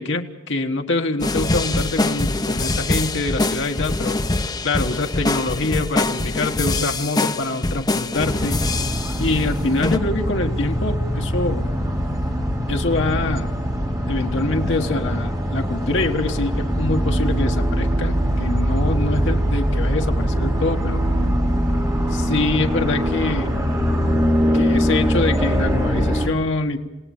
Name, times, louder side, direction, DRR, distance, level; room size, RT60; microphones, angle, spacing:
voice 1, 0.0-4.2 4.6-8.6 9.2-11.6 12.7-13.5 14.1-21.0 22.1-23.5 24.5-26.8, left 2 dB, 60° left, 3 dB, 1.4 m, -25 dB
sound 1, 1.2-9.4 9.8-10.0, left 2 dB, 20° left, 0.7 m, -24 dB
sound 2, 8.2-26.3, equal, 20° right, 3.1 m, -22 dB
28.5 x 18.0 x 7.2 m, 1.1 s
head